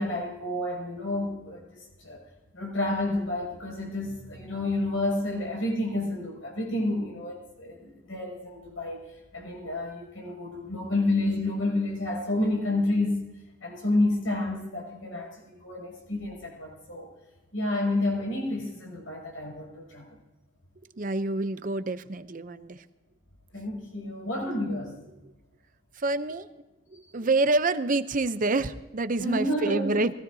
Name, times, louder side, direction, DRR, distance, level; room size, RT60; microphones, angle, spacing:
voice 1, 0.0-2.2 2.5-9.1 9.3-13.3 13.6-17.1 17.5-20.2 23.5-25.0 29.2-30.0, left 2 dB, 80° left, -1 dB, 6.3 m, -30 dB
voice 2, 20.9-22.8 25.9-26.5 26.9-30.1, right 2 dB, 45° right, 12 dB, 0.7 m, -27 dB
22.5 x 16.5 x 2.8 m, 1.1 s
head